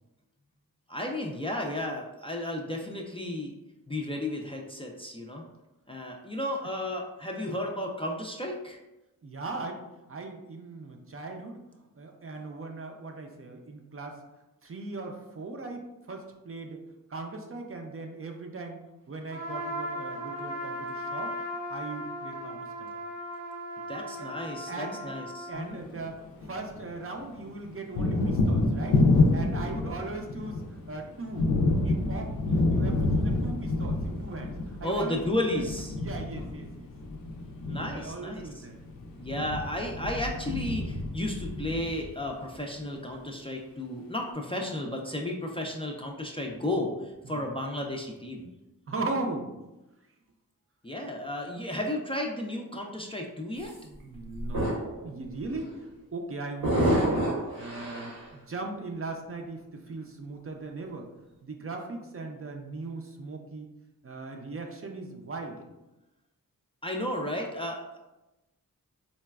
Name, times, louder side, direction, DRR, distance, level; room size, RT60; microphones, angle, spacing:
voice 1, 0.9-3.6 3.9-5.4 5.9-8.8 23.9-25.8 34.8-36.0 37.7-38.7 39.2-46.9 47.3-48.5 50.8-53.7 66.8-68.0, left 1 dB, 15° left, -1 dB, 0.4 m, -33 dB
voice 2, 9.2-9.8 10.1-11.6 12.0-14.2 14.6-16.8 17.1-18.8 19.1-21.3 21.7-22.9 24.2-24.3 24.7-25.1 25.5-29.0 29.3-35.6 36.0-36.9 37.6-38.8 44.5-44.6 46.7-46.9 47.2-47.4 48.9-49.5 53.8-57.3 57.6-61.1 61.4-63.7 64.0-65.6, right 3 dB, 40° right, 2 dB, 0.5 m, -39 dB
Trumpet, 19.3-25.7, equal, 65° right, 0.8 m, -37 dB
Thunder, 25.7-26.9 27.2-42.4, left 2 dB, 85° left, 0.5 m, -28 dB
sound 1, 53.6-53.8 54.3-55.0 55.4-55.6 56.6-58.3, equal, 85° right, 1.1 m, -28 dB
4.0 x 2.2 x 2.2 m, 1.0 s
cardioid pair, 50°, 34 cm